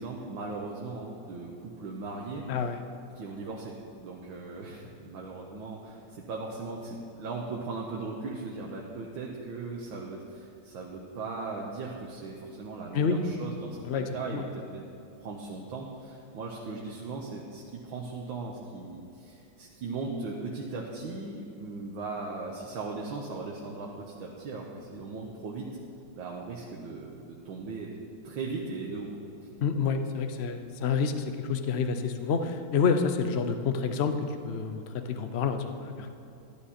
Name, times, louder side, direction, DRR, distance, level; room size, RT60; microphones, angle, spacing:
voice 1, 0.0-2.5 3.2-14.9 15.2-25.7 26.2-28.0 28.2-29.1, right 3 dB, 90° right, -2 dB, 1.8 m, -38 dB
voice 2, 13.9-14.5 29.6-34.2 34.5-36.1, left 5 dB, 75° left, 8 dB, 0.6 m, -28 dB
12.0 x 12.0 x 4.3 m, 2.7 s
omnidirectional pair, 2.1 m